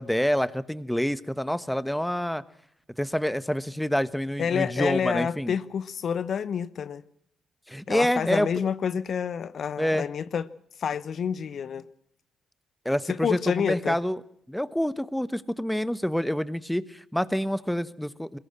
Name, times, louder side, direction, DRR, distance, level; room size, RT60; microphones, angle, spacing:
voice 1, 0.0-2.4 3.0-5.5 7.7-8.5 9.8-10.1 12.8-14.2 14.5-18.4, equal, 5° left, 16 dB, 1.3 m, -27 dB
voice 2, 4.4-7.0 7.9-10.5 10.8-11.8 13.1-14.0, left 7 dB, 55° left, 16 dB, 0.9 m, -28 dB
22.0 x 17.5 x 7.5 m, 0.69 s
hypercardioid pair, 45°, 0 cm